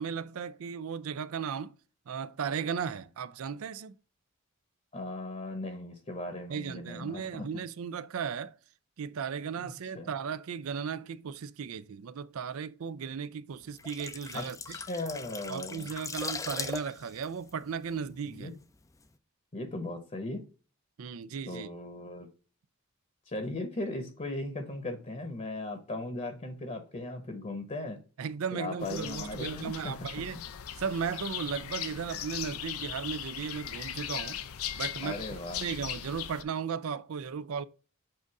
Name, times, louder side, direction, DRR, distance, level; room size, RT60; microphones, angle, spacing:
voice 1, 0.0-1.8 2.1-4.0 6.5-8.6 9.0-14.8 15.5-18.5 21.0-21.7 28.2-30.4 30.7-34.4 34.7-37.6, right 6 dB, 80° right, 0.4 m, -36 dB
voice 2, 4.9-7.4 9.6-10.1 14.3-15.9 18.3-18.5 19.5-20.5 21.5-22.3 23.3-28.0 28.5-29.9 35.0-35.6, left 2 dB, 35° left, 0.9 m, -38 dB
sound 1, 13.6-18.4 18.7-18.9, left 4 dB, 15° left, 0.4 m, -40 dB
sound 2, 28.8-36.4, left 10 dB, 85° left, 0.5 m, -39 dB
7.7 x 2.6 x 4.7 m
head